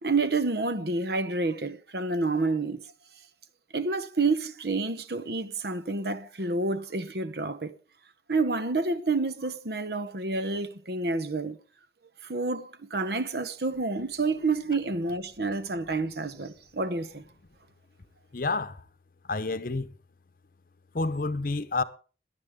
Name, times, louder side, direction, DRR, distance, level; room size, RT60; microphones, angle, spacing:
voice 1, 0.0-2.9 3.7-7.7 8.3-11.6 12.2-17.2, right 3 dB, 60° right, 1.0 m, -29 dB
voice 2, 18.3-18.8 19.3-19.9 20.9-21.8, left 3 dB, 50° left, 0.8 m, -29 dB
17.5 x 11.5 x 3.7 m
head